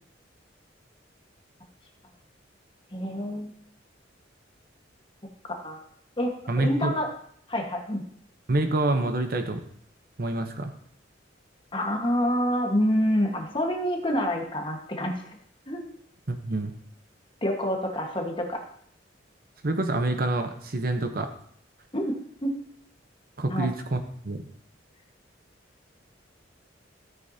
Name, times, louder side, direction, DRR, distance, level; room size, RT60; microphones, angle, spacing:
voice 1, 2.9-3.5 5.5-5.8 6.2-7.1 7.5-8.0 11.7-15.1 15.7-15.8 17.4-18.6 21.9-22.0 22.4-22.5 23.5-23.7, equal, 30° left, 2 dB, 1.5 m, -27 dB
voice 2, 6.5-6.9 8.5-9.6 10.2-10.7 16.3-16.7 19.6-21.3 23.4-24.4, right 2 dB, 50° right, 6 dB, 0.9 m, -27 dB
13.5 x 8.7 x 2.8 m, 0.64 s
head